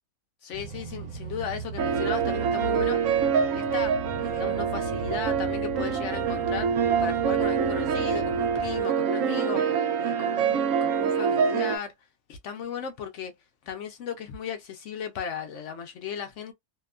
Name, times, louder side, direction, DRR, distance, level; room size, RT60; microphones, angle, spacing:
voice 1, 0.4-3.0 3.5-4.0 4.2-6.7 7.0-9.7 10.0-11.9 12.3-13.3 13.6-16.5, left 7 dB, 65° left, 0.8 m, -36 dB
sound 1, 0.5-8.8, right 1 dB, 90° right, 1.2 m, -38 dB
sound 2, 1.8-11.8, right 7 dB, 70° right, 0.9 m, -25 dB
2.8 x 2.1 x 2.3 m
omnidirectional pair, 1.5 m